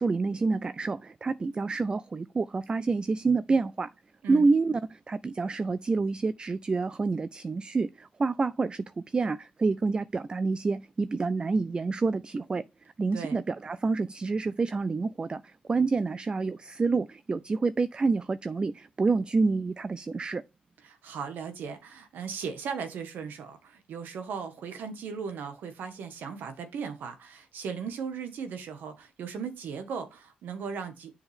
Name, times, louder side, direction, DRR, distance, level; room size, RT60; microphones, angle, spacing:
voice 1, 0.0-3.9 4.3-12.6 13.0-20.4, right 4 dB, 30° right, 0.4 m, -28 dB
voice 2, 20.8-31.1, right 6 dB, 80° right, 1.5 m, -37 dB
7.0 x 5.7 x 3.5 m
cardioid pair, 85°, 3 cm